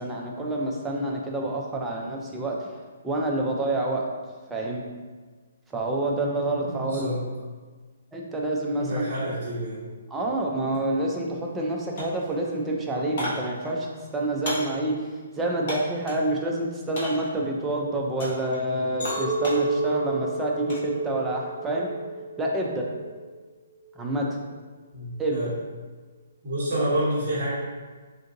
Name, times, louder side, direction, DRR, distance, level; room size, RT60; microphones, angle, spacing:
voice 1, 0.0-2.7 3.0-4.0 4.5-4.8 5.7-7.1 8.1-9.1 10.1-15.0 15.4-21.9 22.4-22.9 24.0-24.4 25.2-25.4, right 1 dB, 5° right, -1 dB, 0.3 m, -27 dB
voice 2, 6.6-7.2 8.8-9.8 24.9-25.5 26.4-27.5, right 1 dB, 35° right, -10 dB, 1.1 m, -28 dB
sound 1, 10.7-10.8 11.2-11.7 12.0-16.3 16.9-17.4 18.2-18.6 18.9-20.9 21.3-21.7, equal, 40° left, 0.9 m, -36 dB
Chink clink, 19.0-23.3 23.8-24.2, right 2 dB, 60° left, 1.1 m, -30 dB
3.6 x 2.5 x 2.6 m, 1.4 s
hypercardioid pair, 170°, 0 cm